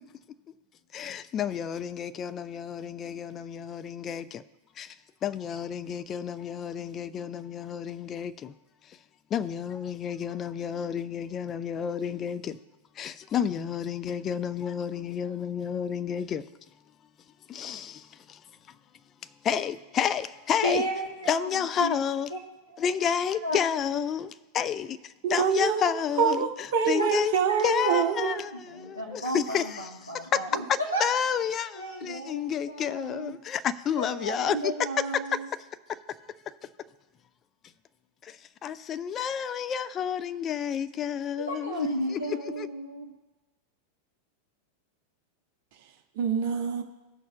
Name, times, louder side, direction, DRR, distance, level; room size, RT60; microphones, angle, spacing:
voice 1, 0.9-4.4 4.8-5.0 5.2-8.5 9.3-12.6 13.0-16.5 17.5-18.4 19.4-20.8 21.3-22.3 22.8-26.5 26.9-27.3 27.6-29.8 31.0-34.7 35.3-35.4 35.9-36.2 36.5-36.6 38.2-42.7, left 8 dB, 30° left, 0.4 m, -30 dB
voice 2, 20.6-22.0 22.3-22.4 22.7-22.9 23.4-23.6 27.0-27.2 27.5-31.1 31.7-33.4 34.0-35.5 41.4-43.1, right 1 dB, 90° left, 0.7 m, -33 dB
voice 3, 25.2-28.4 46.1-46.8, right 7 dB, 50° right, 0.7 m, -26 dB
18.5 x 6.3 x 2.2 m
figure-of-eight pair, 90°, 0 cm